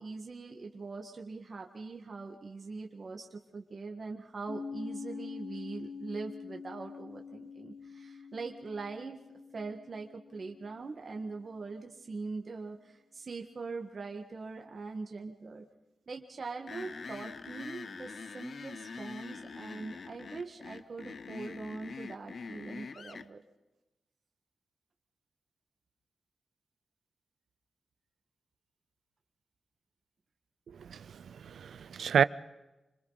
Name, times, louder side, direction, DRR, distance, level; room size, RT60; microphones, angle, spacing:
voice 1, 0.0-9.2 9.5-15.6 16.1-23.4, right 4 dB, 35° right, 1.6 m, -42 dB
Piano, 4.5-11.7, left 5 dB, 60° left, 3.2 m, -46 dB
sound 1, 16.7-23.3, left 5 dB, 45° left, 0.7 m, -44 dB
voice 2, 30.8-32.2, right 7 dB, 75° right, 0.6 m, -30 dB
27.0 x 25.5 x 4.1 m
wide cardioid pair, 175°, 0 cm